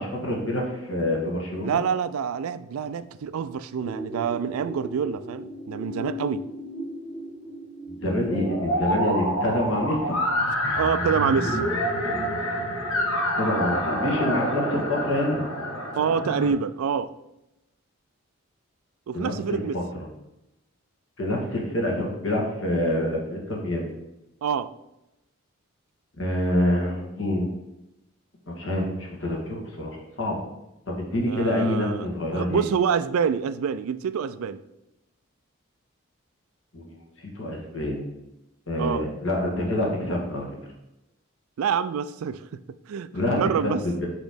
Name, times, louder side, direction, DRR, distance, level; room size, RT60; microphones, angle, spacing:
voice 1, 0.0-1.8 8.0-10.2 13.4-15.4 19.1-20.1 21.2-23.9 26.2-27.5 28.5-30.4 30.9-32.6 36.7-37.0 37.3-38.0 38.7-40.5 43.1-44.1, left 1 dB, 65° left, -1 dB, 1.6 m, -26 dB
voice 2, 1.6-6.4 8.9-9.0 10.7-11.6 16.0-17.1 19.1-19.8 24.4-24.7 31.3-32.1 32.3-34.6 38.8-39.0 41.6-42.4 42.9-43.8, right 7 dB, 85° right, 14 dB, 0.3 m, -26 dB
sound 1, 3.8-16.5, equal, 80° left, 1.5 m, -29 dB
6.1 x 3.1 x 5.1 m, 0.92 s
head